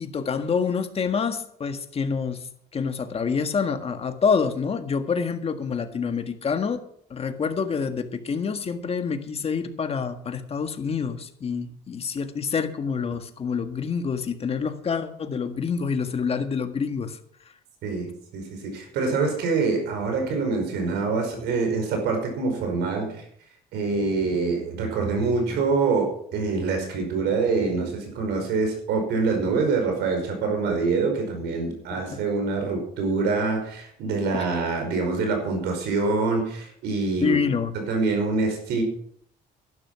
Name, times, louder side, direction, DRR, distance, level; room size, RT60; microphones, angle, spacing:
voice 1, 0.0-2.5 2.7-6.8 7.1-17.2 31.9-32.2 34.3-34.5 37.2-37.7, left 5 dB, 35° left, 7 dB, 1.7 m, -27 dB
voice 2, 17.8-23.2 23.7-37.4 37.7-38.8, right 4 dB, 80° right, 4 dB, 5.1 m, -25 dB
12.0 x 11.0 x 6.1 m, 0.66 s
cardioid pair, 110°, 17 cm